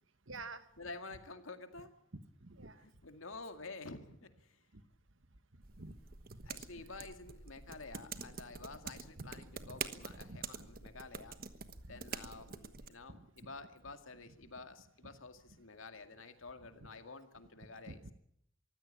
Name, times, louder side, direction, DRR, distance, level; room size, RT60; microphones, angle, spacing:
voice 1, 0.3-0.6 2.4-2.8 5.8-6.0 6.3-6.4 9.1-9.3 9.6-9.8 10.2-10.7 12.3-12.5 13.1-13.2 17.9-18.1, right 2 dB, 70° right, 12 dB, 1.5 m, -49 dB
voice 2, 0.8-1.9 2.8-4.6 6.4-11.4 11.9-18.1, left 3 dB, 80° left, 8 dB, 2.2 m, -50 dB
sound 1, 5.6-12.9, right 6 dB, 45° right, 1.3 m, -47 dB
24.0 x 16.0 x 8.8 m, 0.73 s
head